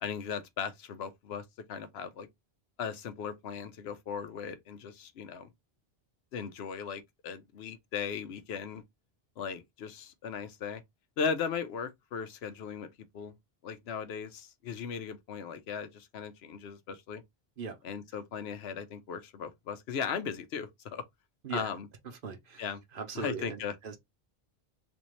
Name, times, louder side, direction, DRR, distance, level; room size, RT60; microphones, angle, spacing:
voice 1, 0.0-2.3 2.8-5.5 6.3-8.8 9.4-10.8 11.2-13.3 13.6-17.2 17.8-21.0 21.5-21.9 22.6-22.8 23.1-23.7, left 6 dB, 85° left, 0.9 m, -37 dB
voice 2, 22.2-24.0, right 5 dB, 60° right, 0.9 m, -40 dB
3.4 x 2.7 x 3.0 m
omnidirectional pair, 1.0 m